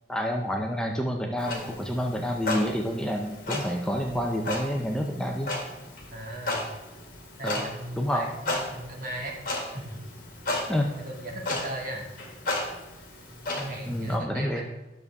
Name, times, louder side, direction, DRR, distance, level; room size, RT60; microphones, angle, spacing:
voice 1, 0.1-5.5 7.4-7.7 8.0-8.3 10.7-10.9 13.9-14.7, equal, 5° left, 1 dB, 0.6 m, -28 dB
Clock, 1.4-14.2, left 2 dB, 50° left, 2.0 m, -35 dB
voice 2, 6.1-6.7 7.4-9.4 9.7-10.0 10.6-12.0 13.4-14.6, right 1 dB, 50° right, -1 dB, 1.9 m, -37 dB
10.5 x 6.9 x 3.6 m, 1.1 s
head